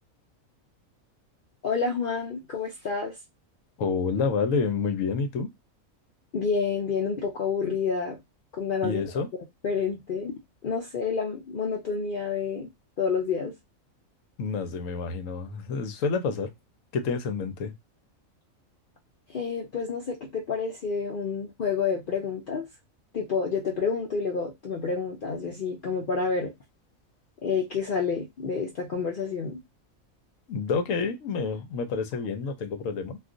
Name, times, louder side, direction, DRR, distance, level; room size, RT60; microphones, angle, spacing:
voice 1, 1.6-3.2 6.3-8.2 8.6-9.0 9.6-12.7 13.0-13.5 19.3-22.7 23.1-26.5 27.4-29.6, left 5 dB, 55° left, 0.6 m, -29 dB
voice 2, 3.8-5.5 8.8-9.3 14.4-16.5 16.9-17.7 30.5-33.2, left 5 dB, 75° left, 1.0 m, -28 dB
2.4 x 2.3 x 3.7 m
omnidirectional pair, 1.4 m